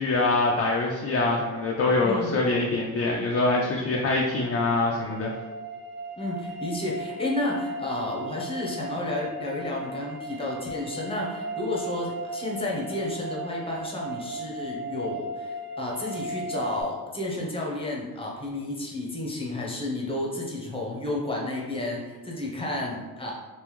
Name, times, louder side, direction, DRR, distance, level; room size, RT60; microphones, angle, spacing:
voice 1, 0.0-5.3, left 2 dB, 40° left, -2 dB, 0.4 m, -24 dB
voice 2, 2.0-2.4 6.2-23.3, left 1 dB, 15° left, -2 dB, 0.8 m, -31 dB
sound 1, 3.7-16.8, right 1 dB, 30° right, 0.5 m, -36 dB
3.4 x 2.9 x 3.1 m, 1.2 s
cardioid pair, 120°, 38 cm